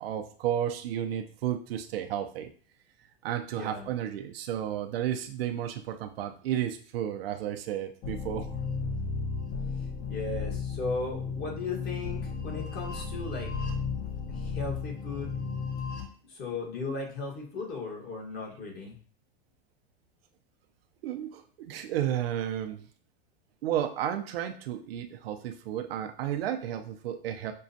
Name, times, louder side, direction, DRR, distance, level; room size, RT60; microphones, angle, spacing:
voice 1, 0.0-2.5 3.2-8.5 21.0-22.9 23.6-27.5, right 10 dB, 80° right, 7 dB, 0.6 m, -32 dB
voice 2, 3.5-3.9 10.1-13.5 14.3-15.4 16.2-19.0, left 3 dB, 35° left, 0 dB, 1.4 m, -36 dB
sound 1, 8.0-16.0, left 5 dB, 55° left, 1.3 m, -34 dB
6.1 x 2.3 x 2.7 m, 0.43 s
hypercardioid pair, 120°, 29 cm